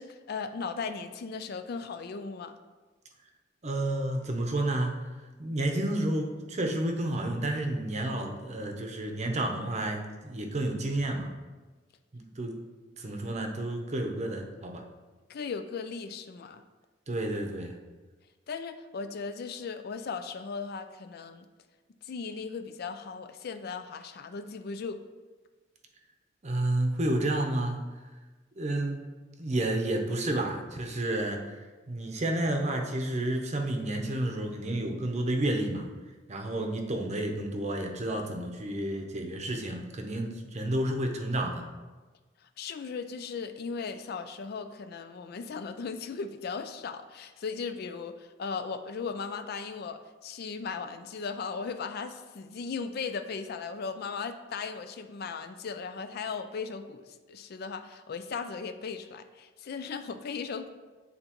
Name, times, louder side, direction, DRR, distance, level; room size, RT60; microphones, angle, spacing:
voice 1, 0.0-2.6 15.3-16.6 18.5-21.5 22.0-25.0 42.6-60.7, left 5 dB, 55° left, 9 dB, 0.4 m, -37 dB
voice 2, 3.6-5.1 5.4-11.3 12.1-12.6 13.0-14.8 17.1-17.8 26.4-27.8 28.6-29.1 29.4-31.6 31.9-35.9 36.3-41.7, right 1 dB, 35° right, 3 dB, 0.7 m, -30 dB
9.0 x 3.9 x 2.9 m, 1.3 s
head